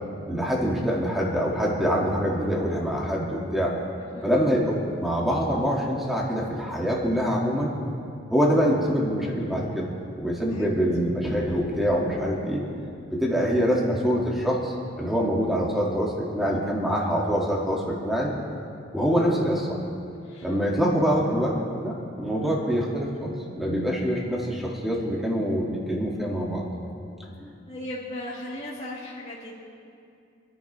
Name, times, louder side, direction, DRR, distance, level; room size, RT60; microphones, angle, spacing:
voice 1, 0.3-3.7 4.2-7.8 8.3-9.9 10.2-12.6 13.1-18.3 18.9-19.8 20.4-21.6 21.8-26.6, equal, ahead, -4 dB, 2.4 m, -25 dB
voice 2, 4.0-4.3 10.5-10.8 19.2-19.4 20.2-20.5 22.4-22.8 27.7-29.5, left 1 dB, 30° left, -8 dB, 2.3 m, -38 dB
27.5 x 11.0 x 3.5 m, 2.5 s
head